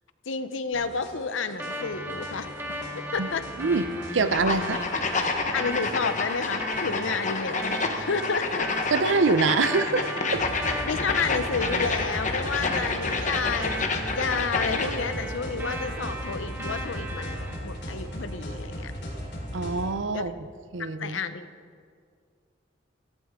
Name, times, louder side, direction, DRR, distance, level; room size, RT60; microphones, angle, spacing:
voice 1, 0.3-3.4 5.5-8.7 10.8-18.9 20.1-20.3 20.8-21.5, left 5 dB, 80° left, 11 dB, 0.8 m, -31 dB
sound 1, 0.7-19.9, equal, 60° left, 4.3 m, -38 dB
sound 2, 1.6-17.6, equal, 10° right, 1.3 m, -37 dB
voice 2, 4.1-4.8 8.9-10.4 19.5-20.3 20.7-21.2, right 4 dB, 75° right, 12 dB, 0.7 m, -24 dB
sound 3, 4.3-15.1, left 4 dB, 40° left, 1.1 m, -29 dB
16.5 x 15.5 x 3.7 m, 2.1 s
head